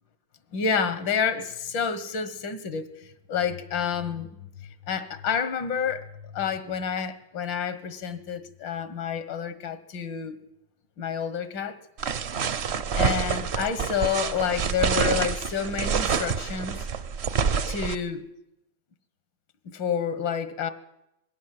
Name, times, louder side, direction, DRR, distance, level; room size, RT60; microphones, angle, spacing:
voice 1, 0.5-4.3 4.9-10.4 11.0-11.8 12.9-16.9 17.7-18.2 19.7-20.7, left 7 dB, 85° left, 2.0 m, -29 dB
sound 1, 12.0-17.9, right 6 dB, 50° right, 0.8 m, -27 dB
21.0 x 16.5 x 7.7 m
omnidirectional pair, 2.0 m